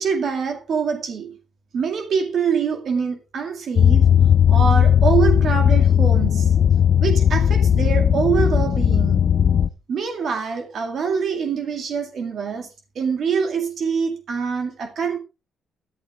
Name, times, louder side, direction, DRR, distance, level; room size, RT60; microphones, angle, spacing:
voice 1, 0.0-1.4 1.7-4.0 4.5-6.5 7.0-9.3 9.9-12.7 13.0-15.2, right 6 dB, 60° right, 2.2 m, -24 dB
sound 1, 3.8-9.7, left 9 dB, 55° left, 0.6 m, -16 dB
12.5 x 11.5 x 3.5 m
cardioid pair, 90°, 0 cm